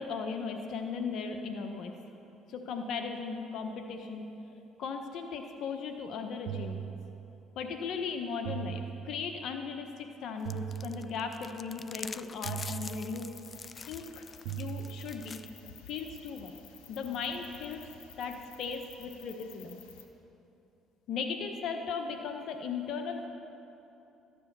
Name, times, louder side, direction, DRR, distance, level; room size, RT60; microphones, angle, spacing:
voice 1, 0.0-1.9 2.5-4.3 4.5-6.9 7.6-13.3 13.8-14.2 14.6-16.5 16.9-17.9 18.2-19.8 21.1-23.3, left 5 dB, 65° left, 5 dB, 1.0 m, -37 dB
sound 1, 6.5-7.6 8.4-9.6 10.4-11.6 12.4-13.6 14.4-15.6, right 10 dB, 85° right, 0.6 m, -41 dB
sound 2, 10.5-15.5, left 5 dB, 35° left, 0.4 m, -45 dB
sound 3, 13.3-20.0, left 7 dB, 90° left, 1.2 m, -53 dB
14.0 x 9.7 x 6.8 m, 2.9 s
supercardioid pair, 80°, 0 cm